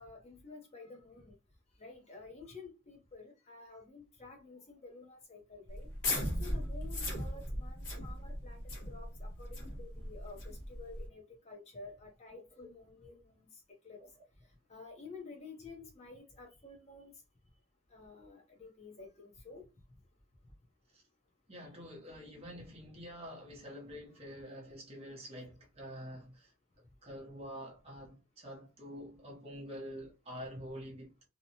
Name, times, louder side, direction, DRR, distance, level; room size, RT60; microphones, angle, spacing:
voice 1, 0.0-1.3 1.8-5.9 6.4-13.5 13.8-14.0 14.7-17.1 17.9-19.6, left 3 dB, 30° left, 0.6 m, -51 dB
sound 1, 5.7-11.1, left 1 dB, 55° left, 1.0 m, -38 dB
voice 2, 21.5-26.5 27.0-31.1, equal, 30° right, 0.8 m, -47 dB
2.8 x 2.1 x 2.8 m
head